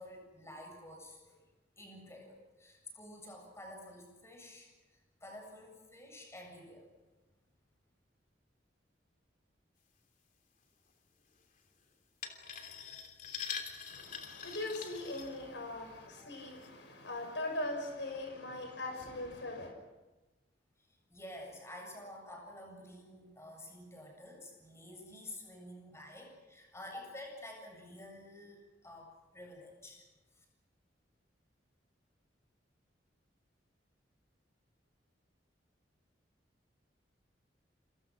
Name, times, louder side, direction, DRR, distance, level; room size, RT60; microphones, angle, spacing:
voice 1, 0.0-1.4 1.8-4.7 5.2-6.9 21.1-30.0, left 1 dB, 15° left, 2 dB, 7.6 m, -50 dB
sound 1, 12.2-15.8 16.4-16.7 17.2-17.3, left 7 dB, 45° left, 3.3 m, -44 dB
voice 2, 13.9-19.7, left 2 dB, 80° left, 3 dB, 6.1 m, -40 dB
28.5 x 26.5 x 6.4 m, 1.1 s
head